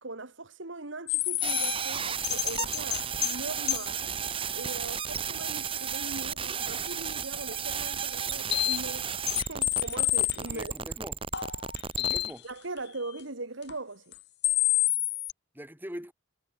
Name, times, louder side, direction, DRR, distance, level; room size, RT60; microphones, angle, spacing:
voice 1, 0.0-4.2 4.6-10.7 12.4-14.1, right 2 dB, 80° right, 2.5 m, -40 dB
sound 1, 1.1-3.4 3.7-3.9 4.5-4.6 5.0-5.1 5.4-5.5 8.0-8.1 8.3-10.7 11.3-12.5 12.8-12.9 13.7-13.8 14.1-14.2 14.4-15.3, left 16 dB, 60° left, 1.2 m, -28 dB
sound 2, 1.4-12.3, right 7 dB, 30° right, 2.4 m, -33 dB
voice 2, 10.4-11.2 11.9-12.5 15.5-16.1, equal, 10° right, 7.1 m, -42 dB
head